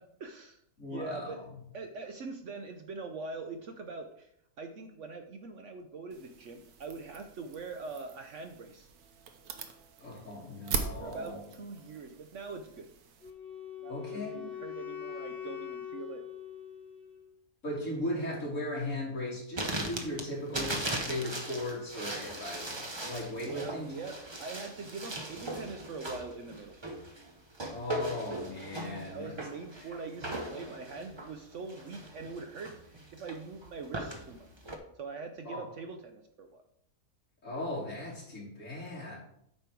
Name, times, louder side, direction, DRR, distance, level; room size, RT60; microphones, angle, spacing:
voice 1, 0.0-0.6 0.9-1.4 1.7-4.3 4.6-8.9 11.0-12.9 13.8-16.3 23.4-26.8 29.1-34.5 35.0-36.6, right 4 dB, 60° right, 6 dB, 0.9 m, -43 dB
voice 2, 0.8-1.4 10.0-11.4 13.9-14.4 17.6-23.9 27.7-29.4 29.8-29.9 35.4-35.7 37.4-39.2, left 1 dB, 55° left, -6 dB, 3.4 m, -37 dB
sound 1, 6.1-13.3, right 6 dB, 85° right, 1.4 m, -42 dB
Wind instrument woodwind instrument, 13.2-17.3, left 9 dB, 35° left, 2.6 m, -42 dB
sound 2, 19.6-34.8, right 1 dB, 25° right, 0.7 m, -39 dB
8.8 x 5.3 x 4.5 m, 0.73 s
omnidirectional pair, 1.6 m